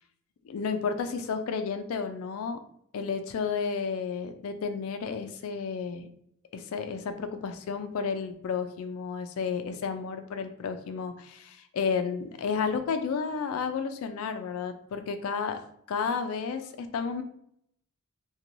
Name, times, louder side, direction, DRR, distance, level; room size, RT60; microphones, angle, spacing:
voice 1, 0.4-2.6 2.9-6.1 6.5-15.6 15.9-17.2, left 5 dB, 70° left, 8 dB, 0.3 m, -32 dB
2.9 x 2.2 x 2.5 m, 0.69 s
head